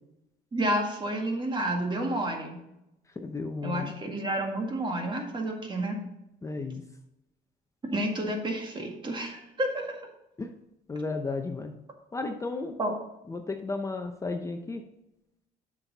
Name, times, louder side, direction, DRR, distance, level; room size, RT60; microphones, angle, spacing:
voice 1, 0.5-2.6 3.6-6.0 7.9-10.1 12.8-12.9, right 1 dB, 30° right, 3 dB, 1.8 m, -30 dB
voice 2, 3.2-3.9 6.4-6.8 10.4-10.5 10.9-11.7 12.1-12.7 13.3-14.8, left 3 dB, 20° left, 4 dB, 0.7 m, -33 dB
8.6 x 6.1 x 4.0 m, 0.89 s
cardioid pair, 110°, 17 cm